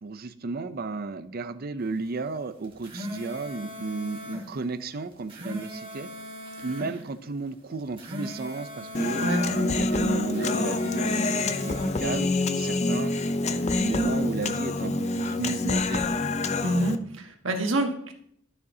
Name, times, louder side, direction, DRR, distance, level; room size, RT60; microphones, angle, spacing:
voice 1, 0.0-6.1 6.6-12.3 12.6-13.1 13.8-16.1, right 3 dB, 50° right, 12 dB, 0.5 m, -33 dB
sound 1, 2.6-4.5 5.1-6.9 7.8-9.6 10.2-12.0, equal, 25° right, 1.8 m, -39 dB
Human voice, 8.9-17.0, left 2 dB, 35° left, 0.5 m, -27 dB
voice 2, 16.6-18.1, right 1 dB, 70° right, 3 dB, 1.4 m, -27 dB
12.5 x 6.8 x 2.8 m, 0.68 s
head